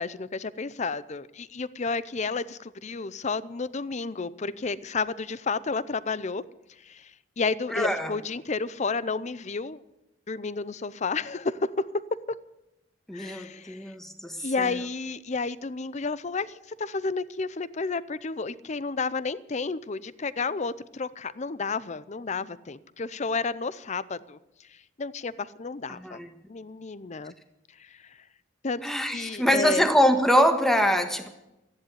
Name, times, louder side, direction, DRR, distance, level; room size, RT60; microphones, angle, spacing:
voice 1, 0.0-6.4 6.8-7.1 7.4-9.8 10.3-11.9 13.1-13.9 14.4-24.4 25.0-26.2 26.5-27.3 27.8-27.9 28.6-28.8 29.1-29.9, left 4 dB, 40° left, 17 dB, 0.6 m, -31 dB
voice 2, 7.7-8.1 13.1-14.7 25.9-26.3 28.8-31.3, equal, ahead, 6 dB, 1.5 m, -24 dB
14.0 x 10.5 x 9.6 m, 0.91 s
head